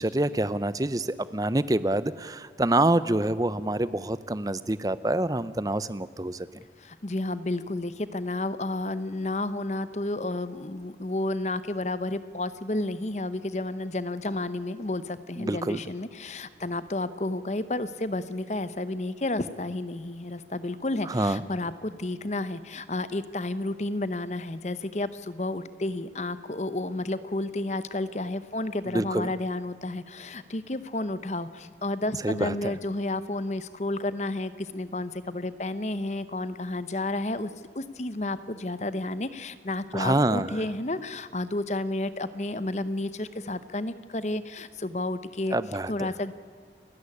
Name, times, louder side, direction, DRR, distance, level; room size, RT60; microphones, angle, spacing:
voice 1, 0.0-6.5 15.4-15.8 21.1-21.4 28.9-29.3 32.2-32.7 39.9-40.5 45.5-46.1, right 1 dB, 20° right, 15 dB, 0.6 m, -26 dB
voice 2, 6.8-37.5 37.7-45.6 45.9-46.3, left 2 dB, 40° left, 14 dB, 0.9 m, -31 dB
29.5 x 13.5 x 9.8 m, 2.1 s
head